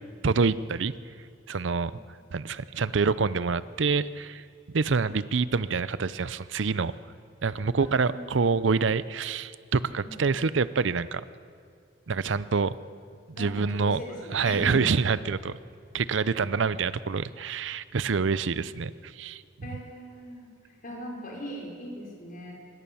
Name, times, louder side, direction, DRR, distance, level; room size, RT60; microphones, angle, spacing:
voice 1, 0.2-0.9 1.5-2.0 2.3-4.4 4.7-6.9 7.4-11.2 12.1-12.8 13.4-14.0 14.3-15.5 15.9-19.4 19.7-19.8, right 5 dB, 65° right, 16 dB, 0.6 m, -26 dB
voice 2, 7.8-8.3 10.0-10.4 13.4-14.9 19.6-20.5 20.8-22.5, equal, 45° left, -1 dB, 5.4 m, -39 dB
25.5 x 22.0 x 7.1 m, 2.2 s
head